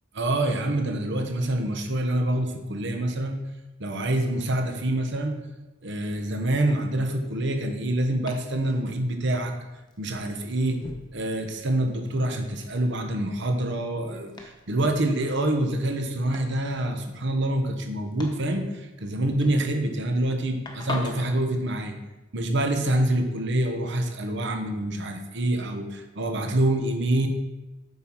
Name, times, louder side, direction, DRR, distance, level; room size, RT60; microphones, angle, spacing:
voice 1, 0.1-3.4 3.8-5.3 5.8-9.5 10.0-10.8 11.1-21.9 22.3-27.3, right 1 dB, 60° right, 5 dB, 1.0 m, -26 dB
Domestic sounds home sounds, 5.8-21.4, left 2 dB, 20° left, 1.0 m, -45 dB
7.9 x 5.6 x 4.6 m, 1.1 s
head